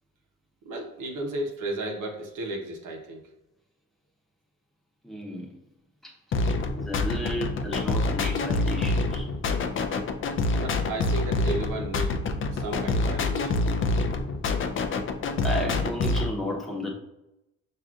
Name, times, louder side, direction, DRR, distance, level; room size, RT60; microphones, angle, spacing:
voice 1, 0.6-3.2 10.5-12.2 12.5-13.6, right 1 dB, 85° right, 0 dB, 0.9 m, -34 dB
voice 2, 5.0-5.5 6.0-6.1 6.8-9.3 15.4-16.9, left 1 dB, ahead, -2 dB, 0.9 m, -33 dB
sound 1, 6.3-16.3, left 3 dB, 45° left, 0.5 m, -26 dB
5.9 x 2.6 x 2.4 m, 0.90 s
cardioid pair, 90°, 30 cm